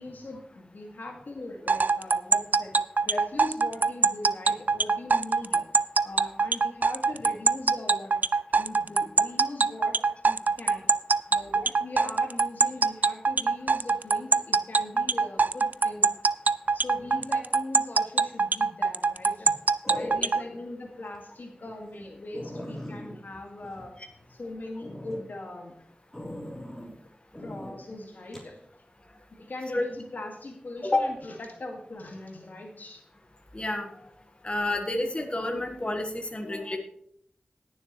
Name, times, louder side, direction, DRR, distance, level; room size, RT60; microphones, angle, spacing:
voice 1, 0.0-2.8 3.0-5.6 6.0-8.2 8.5-10.0 10.2-10.9 11.3-16.1 16.7-19.5 19.9-23.9 24.3-25.8 26.8-26.9 27.4-28.6 29.3-33.0 36.4-36.7, left 2 dB, 75° left, 1 dB, 2.1 m, -40 dB
sound 1, 1.7-20.4, right 4 dB, 70° right, 0.4 m, -23 dB
sound 2, 18.2-18.7 19.8-20.6 21.1-21.2 21.7-21.8 22.0-22.1 22.3-24.4 24.8-25.2 26.1-26.9 27.3-27.8 28.3-28.5, left 1 dB, 10° left, 3.5 m, -40 dB
voice 2, 33.5-33.9 34.4-36.8, left 2 dB, 35° left, 3 dB, 1.6 m, -29 dB
19.0 x 7.1 x 3.2 m, 0.70 s
wide cardioid pair, 50°, 3 cm